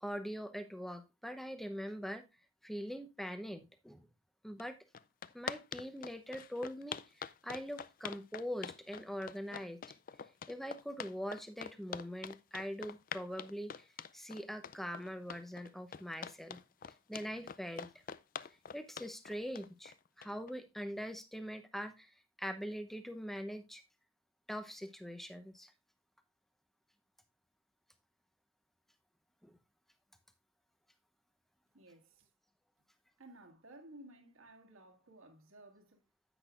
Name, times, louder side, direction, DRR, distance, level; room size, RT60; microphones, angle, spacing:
voice 1, 0.0-2.3 2.6-4.1 4.4-4.8 5.3-9.8 10.5-13.9 14.1-16.6 17.1-17.9 18.7-23.8 24.5-25.7 29.4-29.6, equal, ahead, 0.8 m, -43 dB
sound 1, 4.6-4.7 4.9-20.5, left 7 dB, 40° left, 0.4 m, -45 dB
voice 2, 31.7-32.3 33.2-36.0, right 1 dB, 75° right, 2.0 m, -56 dB
10.0 x 8.6 x 2.5 m
head